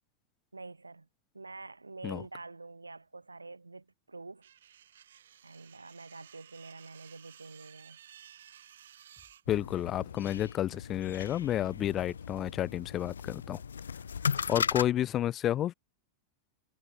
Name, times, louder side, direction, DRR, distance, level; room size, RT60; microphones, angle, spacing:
voice 1, 0.5-1.1 1.3-4.5 5.4-8.0 14.5-14.8, right 3 dB, 80° right, 4.6 m, -47 dB
sound 1, 4.4-9.4, right 10 dB, 65° right, 7.0 m, -55 dB
sound 2, 9.2-14.8, left 4 dB, 15° left, 5.3 m, -67 dB
sound 3, 9.5-14.9, left 7 dB, 70° left, 0.8 m, -37 dB
voice 2, 9.5-13.6 14.5-15.7, left 12 dB, 30° left, 0.5 m, -31 dB
figure-of-eight pair, 90°, 0 cm